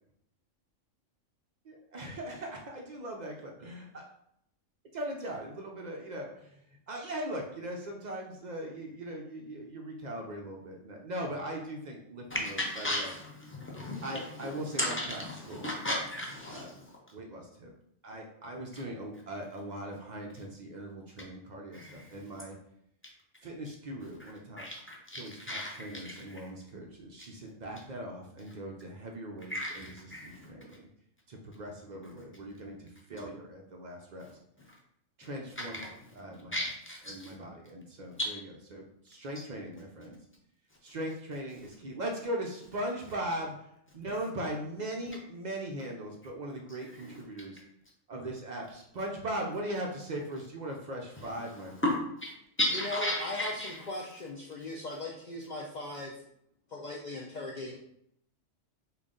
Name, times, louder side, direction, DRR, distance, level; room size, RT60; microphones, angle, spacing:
voice 1, 1.6-4.0 4.9-6.6 6.9-13.1 14.0-15.7 16.5-16.8 17.1-17.7 18.0-22.6 23.4-24.7 25.1-30.8 31.3-34.3 35.2-35.8 36.1-36.6 37.1-40.2 40.8-43.5 43.9-47.6 48.1-51.7, right 1 dB, 60° right, 1 dB, 0.4 m, -39 dB
voice 2, 12.3-14.2 14.7-16.9 21.7-22.1 24.6-26.4 29.5-30.5 35.6-35.7 36.5-37.3 38.2-38.3 46.9-47.1 51.8-51.9 52.2-52.3 52.6-53.8, left 1 dB, 15° left, -3 dB, 0.5 m, -34 dB
voice 3, 52.7-56.1 56.7-57.8, left 2 dB, 70° left, -2 dB, 0.4 m, -38 dB
3.8 x 2.3 x 3.6 m, 0.74 s
omnidirectional pair, 1.3 m